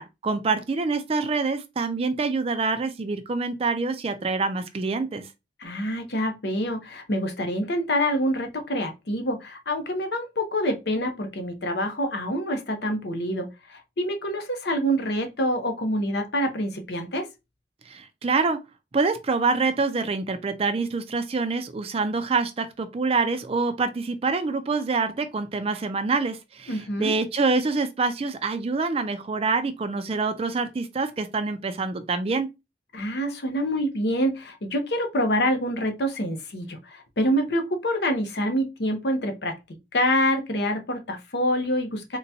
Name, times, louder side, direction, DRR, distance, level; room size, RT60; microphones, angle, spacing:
voice 1, 0.0-5.3 17.9-18.6 18.9-32.5, right 4 dB, 35° right, 0.4 m, -26 dB
voice 2, 5.6-17.3 26.7-27.1 32.9-39.5 39.9-42.2, equal, 65° left, 0.8 m, -26 dB
3.9 x 2.2 x 2.7 m
head